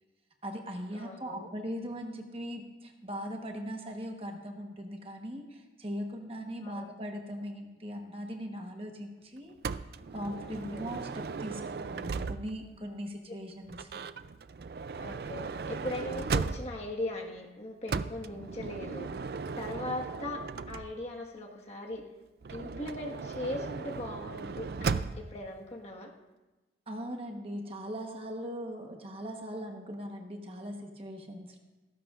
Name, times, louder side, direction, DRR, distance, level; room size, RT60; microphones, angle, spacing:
voice 1, 0.4-9.5 10.1-14.1 26.9-31.6, equal, 30° right, 3 dB, 1.1 m, -40 dB
voice 2, 0.9-1.5 6.6-6.9 10.5-11.0 13.3-13.4 15.0-19.1 19.6-22.0 22.5-26.1, left 1 dB, 35° left, 0 dB, 1.5 m, -39 dB
Motor vehicle (road) / Sliding door, 9.6-12.7 13.7-16.9 17.9-21.2 22.4-25.4, right 5 dB, 55° right, 0.4 m, -36 dB
17.5 x 15.0 x 2.5 m, 1.1 s
head